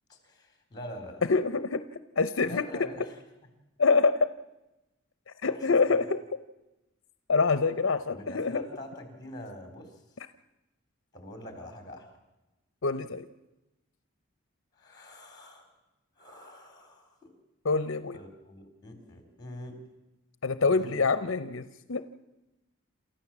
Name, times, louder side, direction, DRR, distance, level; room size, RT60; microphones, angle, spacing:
voice 1, 0.1-1.2 2.4-3.1 5.4-5.7 8.1-10.0 11.1-12.1 14.8-15.7 16.2-17.3 18.1-19.8 20.6-21.0, equal, 20° left, 5 dB, 4.0 m, -45 dB
voice 2, 1.3-1.8 2.2-2.7 3.8-4.3 5.4-6.2 7.3-8.6 12.8-13.3 17.6-18.2 20.4-22.0, left 4 dB, 65° left, 12 dB, 0.7 m, -25 dB
28.5 x 14.0 x 7.3 m, 0.99 s
head